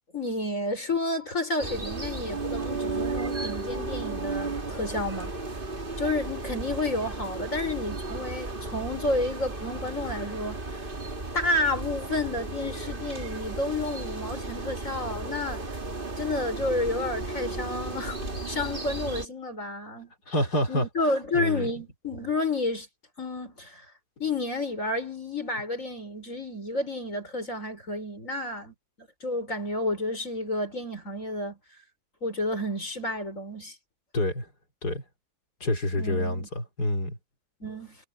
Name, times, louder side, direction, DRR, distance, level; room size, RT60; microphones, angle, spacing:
voice 1, 0.1-5.3 6.0-10.6 11.3-15.6 16.2-20.1 20.7-22.9 23.2-23.8 24.2-31.6 32.2-33.7 36.0-36.5 37.6-38.0, left 2 dB, 55° left, 6.5 m, -31 dB
sound 1, 1.6-19.3, right 3 dB, 35° right, 2.4 m, -34 dB
voice 2, 20.3-20.9 21.3-21.7 34.1-34.5 34.8-35.0 35.6-37.2, left 1 dB, 90° left, 5.0 m, -27 dB
omnidirectional pair, 1.7 m